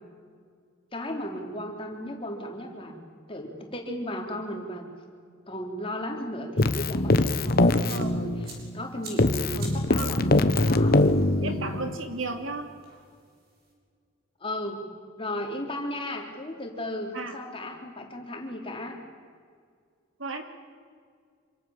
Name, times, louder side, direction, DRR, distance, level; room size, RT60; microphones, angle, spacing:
voice 1, 0.9-3.0 3.3-4.8 5.5-11.0 11.4-11.8 14.4-14.8 15.2-19.0, left 1 dB, 25° left, 2 dB, 3.4 m, -35 dB
Keyboard (musical), 6.6-8.9 9.2-12.0, left 2 dB, 50° left, 1.1 m, -23 dB
sound 1, 7.3-13.7, right 2 dB, 50° right, 7.3 m, -50 dB
voice 2, 7.9-8.3 10.0-10.2 11.4-12.7 17.1-17.4 20.2-20.4, right 3 dB, 80° right, 5 dB, 2.8 m, -34 dB
26.5 x 25.5 x 7.2 m, 2.1 s
head